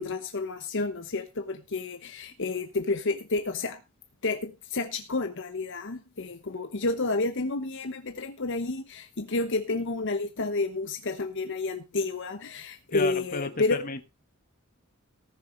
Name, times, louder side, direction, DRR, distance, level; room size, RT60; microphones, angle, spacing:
voice 1, 0.0-3.8 4.2-13.8, left 3 dB, 60° left, 8 dB, 1.0 m, -30 dB
voice 2, 12.9-14.0, left 3 dB, 40° left, 10 dB, 1.4 m, -33 dB
18.0 x 6.8 x 3.9 m, 0.26 s
head